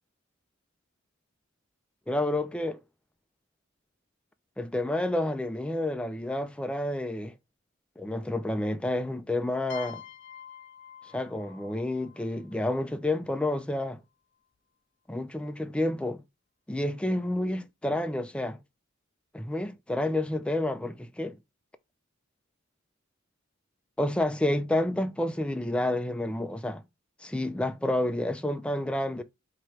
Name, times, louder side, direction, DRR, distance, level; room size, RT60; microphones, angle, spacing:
voice 1, 2.1-2.8 4.6-7.3 8.0-10.0 11.1-14.0 15.1-16.2 16.7-18.6 19.3-21.4 24.0-26.8 27.2-29.2, left 1 dB, 5° left, 0.3 m, -29 dB
sound 1, 9.7-13.3, left 9 dB, 65° left, 0.6 m, -47 dB
4.7 x 2.9 x 3.1 m
head